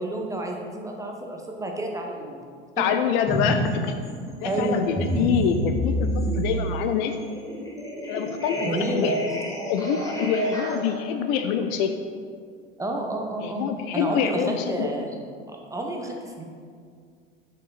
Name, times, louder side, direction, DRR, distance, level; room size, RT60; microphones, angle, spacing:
voice 1, 0.0-2.5 2.8-2.9 4.4-4.8 8.6-9.1 12.8-15.2 15.5-16.4, right 1 dB, 10° right, 1 dB, 1.0 m, -30 dB
voice 2, 2.8-3.9 4.4-7.1 8.1-9.1 9.7-11.9 13.4-14.9, left 8 dB, 55° left, 7 dB, 0.5 m, -26 dB
sound 1, 3.3-3.7 4.0-10.9, equal, 10° left, 1.6 m, -28 dB
6.5 x 5.2 x 4.1 m, 2.1 s
figure-of-eight pair, 75°, 32 cm